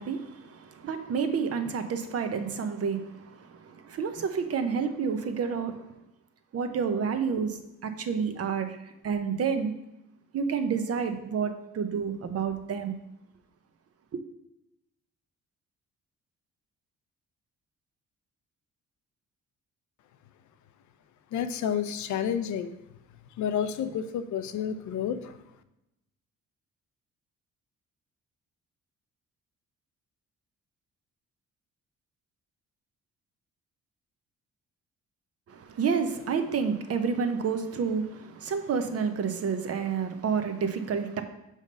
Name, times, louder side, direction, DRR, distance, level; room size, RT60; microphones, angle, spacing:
voice 1, 0.0-5.9 6.5-9.7 10.3-13.0 14.1-14.2 35.5-41.2, right 6 dB, 55° right, 0.8 m, -29 dB
voice 2, 21.3-22.8 23.4-25.4, left 8 dB, 70° left, 0.6 m, -30 dB
5.3 x 5.0 x 5.3 m
cardioid pair, 90°, 30 cm